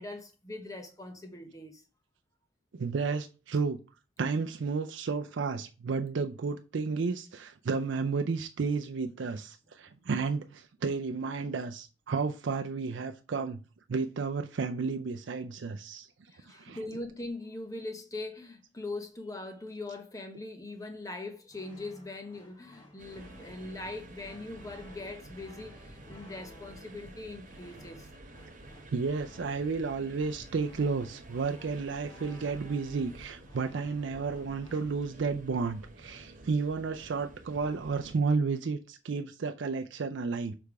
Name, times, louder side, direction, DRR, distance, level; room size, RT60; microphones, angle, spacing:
voice 1, 0.0-1.8 9.8-9.9 16.3-28.1, left 2 dB, 15° left, 0.8 m, -41 dB
voice 2, 2.7-3.8 4.2-13.6 13.9-16.1 16.6-16.8 28.9-40.5, right 4 dB, 65° right, 0.4 m, -32 dB
sound 1, 21.5-34.8, left 1 dB, 30° left, 2.5 m, -57 dB
sound 2, 23.0-38.2, right 1 dB, 40° right, 1.0 m, -50 dB
6.6 x 3.4 x 4.7 m
head